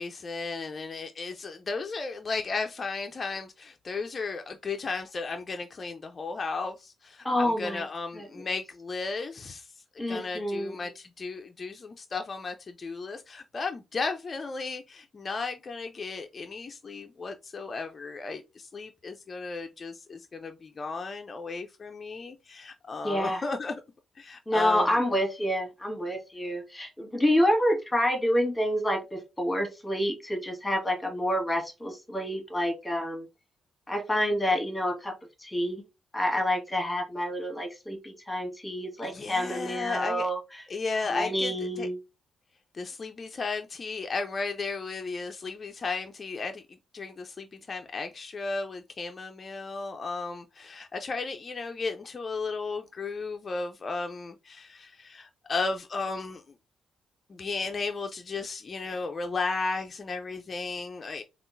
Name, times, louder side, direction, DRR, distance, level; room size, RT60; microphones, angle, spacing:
voice 1, 0.0-9.7 9.9-23.8 24.2-25.0 39.0-40.3 40.7-41.9 42.7-46.6 46.9-56.5 57.3-61.2, left 4 dB, 45° left, 0.5 m, -34 dB
voice 2, 7.2-7.8 8.2-8.3 10.0-10.7 23.0-23.4 24.5-33.3 33.9-35.1 35.4-35.8 36.1-40.4 41.1-42.0, equal, 15° left, 1.4 m, -28 dB
3.6 x 2.4 x 2.5 m
supercardioid pair, 50°, 0 cm